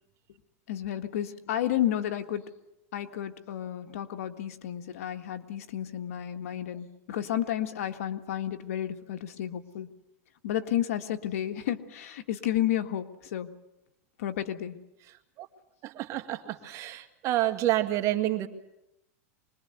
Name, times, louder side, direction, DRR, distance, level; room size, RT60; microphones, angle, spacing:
voice 1, 0.7-2.5 2.9-9.9 10.4-13.5 14.2-14.8, left 11 dB, 75° left, 8 dB, 1.8 m, -31 dB
voice 2, 15.8-18.5, right 14 dB, 40° right, 7 dB, 2.1 m, -28 dB
25.0 x 21.0 x 8.1 m, 0.87 s
supercardioid pair, 130°, 8 cm